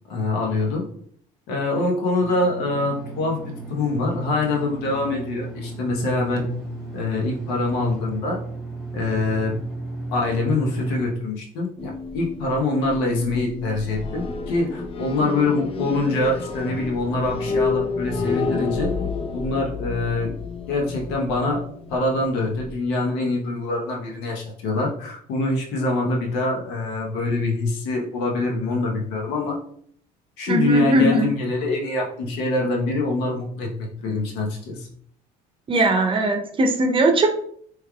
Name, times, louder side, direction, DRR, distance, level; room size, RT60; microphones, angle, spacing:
voice 1, 0.1-0.9 1.5-3.4 3.7-6.5 6.9-8.4 8.9-9.5 10.1-18.9 19.3-20.3 20.7-21.6 21.9-29.6 30.4-34.9, left 2 dB, 80° left, 0 dB, 1.0 m, -24 dB
sound 1, 2.2-11.0, right 2 dB, ahead, 1.3 m, -34 dB
sound 2, 11.8-22.7, left 4 dB, 35° left, 0.5 m, -30 dB
voice 2, 30.5-31.3 35.7-37.3, right 1 dB, 30° right, 4 dB, 0.7 m, -19 dB
3.2 x 3.2 x 2.3 m, 0.62 s
supercardioid pair, 90°, 17 cm